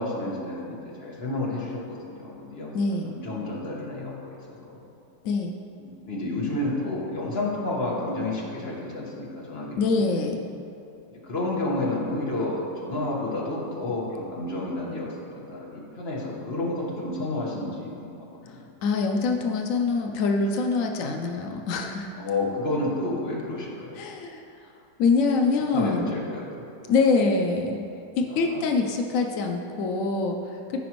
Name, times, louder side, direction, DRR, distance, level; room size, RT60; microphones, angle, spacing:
voice 1, 0.0-2.7 3.1-4.8 5.8-9.8 11.2-18.7 22.1-24.0 25.7-26.6 28.3-28.6, left 2 dB, 35° left, -4 dB, 1.4 m, -30 dB
voice 2, 2.7-3.2 5.2-5.5 9.8-10.4 18.8-22.1 23.9-24.4 25.0-26.1 26.9-27.8 28.2-30.8, left 4 dB, 85° left, 2 dB, 0.7 m, -24 dB
14.5 x 5.1 x 3.0 m, 2.7 s
omnidirectional pair, 2.1 m